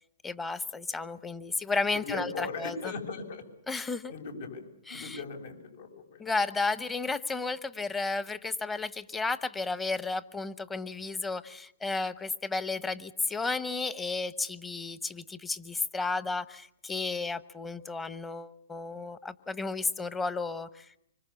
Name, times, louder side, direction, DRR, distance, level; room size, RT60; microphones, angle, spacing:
voice 1, 0.2-2.9 3.7-4.1 4.9-5.2 5.9-20.9, left 3 dB, 10° left, 14 dB, 1.1 m, -33 dB
voice 2, 2.1-3.4 4.1-6.2, left 4 dB, 70° left, 5 dB, 7.5 m, -38 dB
25.5 x 25.0 x 7.2 m, 0.78 s
hypercardioid pair, 130°, 0 cm